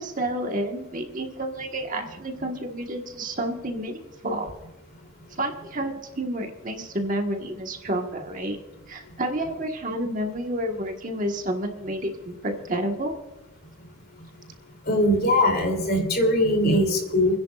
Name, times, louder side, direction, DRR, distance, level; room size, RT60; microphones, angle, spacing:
voice 1, 0.0-4.5 5.3-8.6 8.9-13.1, right 1 dB, 35° right, 3 dB, 1.4 m, -30 dB
voice 2, 14.9-17.4, left 1 dB, 45° left, 3 dB, 3.0 m, -21 dB
30.0 x 10.5 x 2.4 m, 1.1 s
head